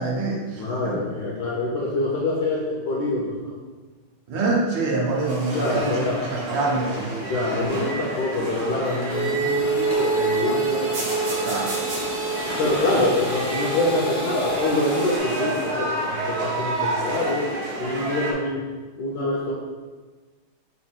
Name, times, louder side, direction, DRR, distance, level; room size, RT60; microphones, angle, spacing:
voice 1, 0.0-1.0 4.3-7.3 7.5-7.7 11.4-12.0, right 3 dB, 65° right, -2 dB, 1.5 m, -26 dB
voice 2, 0.5-3.5 5.5-6.2 7.3-11.5 12.6-17.5 17.8-18.6 19.0-19.5, left 2 dB, 65° left, -4 dB, 1.1 m, -25 dB
sound 1, 5.0-18.3, right 2 dB, 85° right, 0.6 m, -30 dB
sound 2, 9.1-15.2, right 3 dB, 35° left, 0.7 m, -27 dB
4.2 x 2.6 x 4.3 m, 1.3 s
omnidirectional pair, 2.2 m